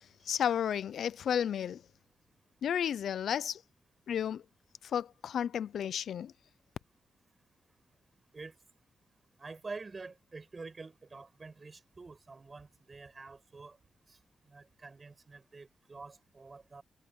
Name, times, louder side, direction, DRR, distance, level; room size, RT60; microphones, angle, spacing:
voice 1, 0.3-1.8 2.6-3.6 4.1-4.4 4.9-6.3, left 9 dB, 80° left, 0.5 m, -32 dB
voice 2, 9.4-13.8 14.1-14.2 14.5-16.8, right 3 dB, 35° right, 7.9 m, -47 dB
cardioid pair, 80°, 0 cm